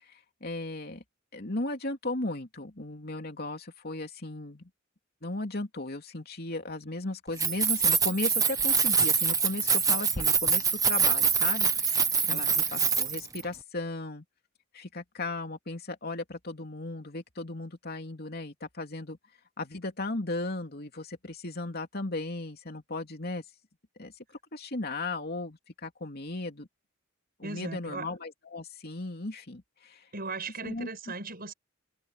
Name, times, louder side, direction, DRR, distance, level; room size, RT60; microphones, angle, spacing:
voice 1, 0.1-1.0 1.3-4.7 5.2-14.2 14.7-19.2 19.6-23.4 24.0-24.1 24.5-26.7 27.4-30.0 30.6-30.9, left 2 dB, 50° left, 3.0 m, -36 dB
Keys jangling, 7.3-13.4, right 6 dB, 15° right, 1.4 m, -25 dB
voice 2, 12.2-12.6 27.4-28.1 30.1-31.5, right 3 dB, 45° right, 7.5 m, -38 dB
head